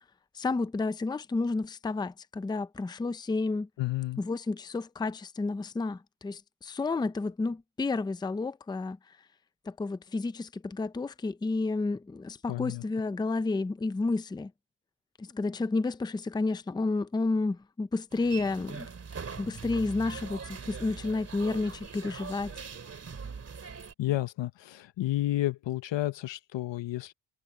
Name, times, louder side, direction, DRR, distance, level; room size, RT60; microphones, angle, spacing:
voice 1, 0.3-3.7 4.2-9.0 9.7-14.5 15.2-18.9 19.4-22.5, left 3 dB, 10° left, 0.4 m, -31 dB
voice 2, 3.8-4.2 12.5-12.8 24.0-27.1, left 15 dB, 90° left, 0.9 m, -31 dB
sound 1, 18.1-23.9, right 5 dB, 35° right, 2.6 m, -42 dB
wide cardioid pair, 160°, 43 cm